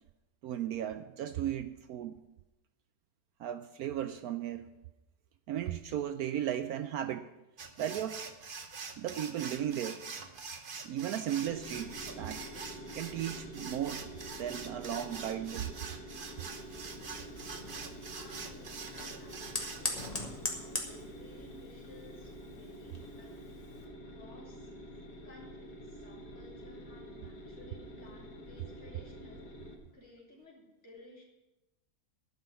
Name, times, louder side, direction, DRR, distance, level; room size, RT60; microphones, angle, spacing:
voice 1, 0.4-2.2 3.4-4.7 5.5-7.3 7.8-8.2 9.0-10.0 10.8-12.4 12.9-14.1 14.4-15.7, right 10 dB, 70° right, 11 dB, 1.0 m, -35 dB
sound 1, 7.6-20.1, right 5 dB, 40° right, 0.9 m, -45 dB
sound 2, 11.5-29.7, equal, 70° left, 2.2 m, -48 dB
Fire, 16.6-23.9, left 2 dB, 25° left, 1.7 m, -43 dB
voice 2, 18.1-20.1 20.3-23.4 23.8-24.7 25.2-29.5 29.9-31.2, left 1 dB, 40° left, -4 dB, 3.8 m, -56 dB
12.0 x 6.0 x 9.3 m, 0.99 s
omnidirectional pair, 1.8 m